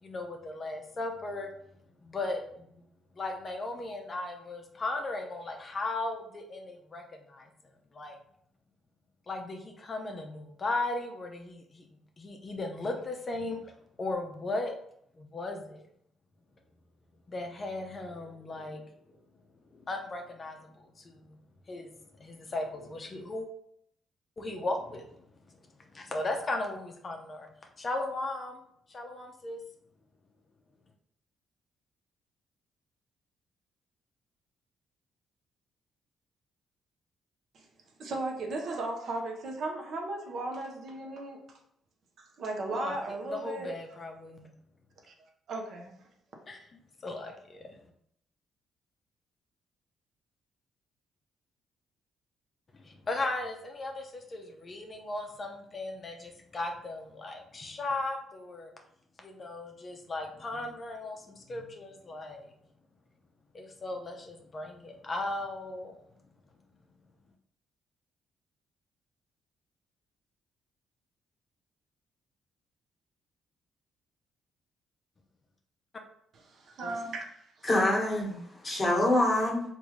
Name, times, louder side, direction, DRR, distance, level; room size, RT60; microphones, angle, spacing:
voice 1, 0.0-1.5 2.0-2.8 3.2-7.0 7.3-7.5 7.9-8.2 9.3-11.8 12.2-13.7 14.0-14.7 15.2-15.8 17.3-18.8 19.7-21.3 21.7-21.9 22.2-23.5 24.4-25.1 25.9-27.5 27.8-28.6 28.9-29.6 42.7-43.0 43.3-44.5 46.5-46.6 47.0-47.7 52.7-58.7 59.2-62.5 63.5-66.0 76.8-76.9, left 2 dB, 35° left, 3 dB, 0.5 m, -36 dB
voice 2, 38.0-41.6 42.2-43.7 45.1-45.2 45.5-45.9 76.3-77.7, right 2 dB, 65° right, 2 dB, 0.7 m, -36 dB
voice 3, 77.6-79.6, left 1 dB, 20° left, -2 dB, 1.1 m, -26 dB
3.4 x 2.5 x 3.1 m, 0.70 s
cardioid pair, 90°, 0 cm